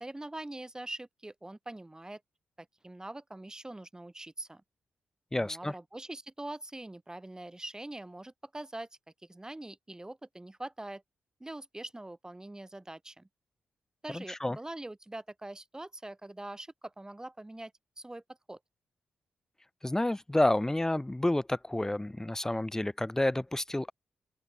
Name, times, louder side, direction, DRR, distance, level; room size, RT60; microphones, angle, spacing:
voice 1, 0.0-2.2 2.6-4.6 5.3-8.9 9.2-11.0 11.4-13.3 14.0-18.2 18.5-18.6, right 1 dB, 15° right, 2.9 m, -43 dB
voice 2, 5.3-5.7 14.1-14.6 19.8-23.9, left 1 dB, 15° left, 0.7 m, -29 dB
open air
supercardioid pair, 45°, 4 cm